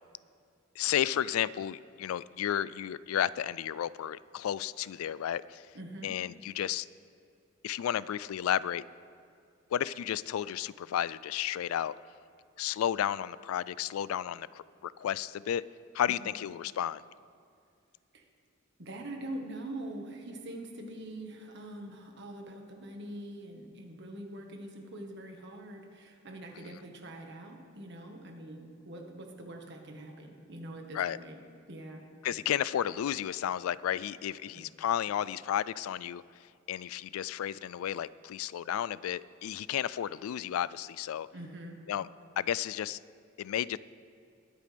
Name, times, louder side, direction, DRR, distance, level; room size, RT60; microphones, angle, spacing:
voice 1, 0.8-5.6 6.0-6.9 7.6-8.8 9.7-11.9 12.6-15.6 15.9-17.0 30.9-31.2 32.2-36.2 36.7-41.3 41.9-42.1 42.4-43.0 43.4-43.8, left 10 dB, 85° left, 20 dB, 0.3 m, -32 dB
voice 2, 5.7-6.1 16.1-16.3 18.1-18.2 18.8-31.4 31.7-32.1 34.5-34.7 41.3-41.8, right 1 dB, 55° right, 3 dB, 1.5 m, -44 dB
21.5 x 8.3 x 3.4 m, 2.4 s
head